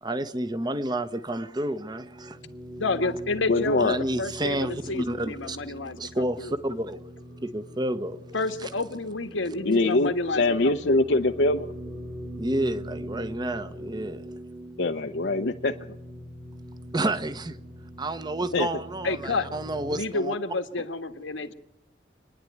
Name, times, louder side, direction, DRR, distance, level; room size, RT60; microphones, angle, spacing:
voice 1, 0.0-2.5 3.8-5.6 6.0-7.0 7.4-8.2 8.6-8.7 12.4-14.2 16.9-17.6 18.0-20.3 21.4-21.5, right 1 dB, 20° right, 13 dB, 0.9 m, -30 dB
sound 1, 1.2-20.0, equal, 85° right, 7.1 m, -42 dB
voice 2, 2.8-3.9 4.2-6.5 8.3-11.0 19.0-19.5 19.9-21.5, left 3 dB, 85° left, 6 dB, 1.6 m, -30 dB
voice 3, 3.5-4.0 9.7-11.7 14.8-15.9 18.5-18.7, left 2 dB, 60° left, 4 dB, 0.7 m, -23 dB
26.5 x 10.5 x 9.4 m, 0.88 s
head